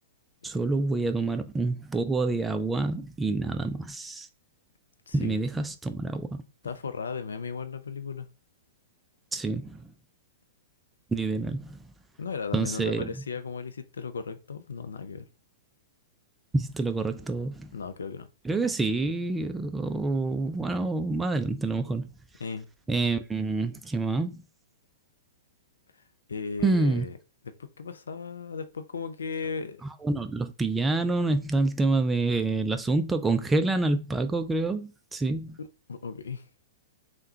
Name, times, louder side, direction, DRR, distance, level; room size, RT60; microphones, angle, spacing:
voice 1, 0.4-4.3 5.1-6.4 9.3-9.8 11.1-11.8 12.5-13.1 16.5-17.7 18.4-22.1 22.9-24.4 26.6-27.0 30.0-35.6, right 3 dB, 10° right, 0.3 m, -27 dB
voice 2, 5.1-5.4 6.6-8.3 12.2-15.3 17.7-18.3 18.6-18.7 22.4-22.7 26.3-27.1 27.4-29.8 35.6-36.5, left 5 dB, 70° left, 0.4 m, -36 dB
3.4 x 2.2 x 2.7 m
figure-of-eight pair, 105°, 0 cm